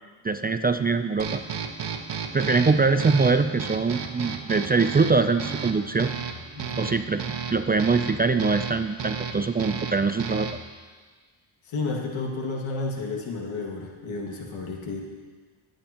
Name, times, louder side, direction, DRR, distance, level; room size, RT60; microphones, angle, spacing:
voice 1, 0.2-1.4 2.3-6.1 6.8-7.2 7.5-10.5, right 4 dB, 20° right, 9 dB, 0.5 m, -23 dB
sound 1, 1.2-10.7, right 6 dB, 55° right, 1.3 m, -34 dB
voice 2, 6.5-7.0 11.7-15.0, left 3 dB, 75° left, 0 dB, 2.3 m, -31 dB
21.5 x 8.9 x 3.0 m, 1.5 s
cardioid pair, 75°, 49 cm